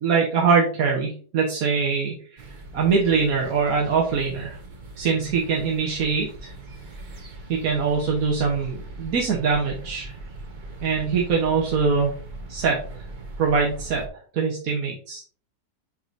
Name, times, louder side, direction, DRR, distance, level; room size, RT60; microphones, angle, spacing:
voice 1, 0.0-2.4 2.7-4.6 5.0-6.5 7.5-10.1 10.8-12.1 12.5-13.0 13.4-14.0 14.3-15.2, right 5 dB, 60° right, -2 dB, 1.5 m, -23 dB
sound 1, 2.4-14.1, right 2 dB, 35° right, 1.0 m, -40 dB
7.8 x 4.8 x 2.7 m, 0.44 s
omnidirectional pair, 1.7 m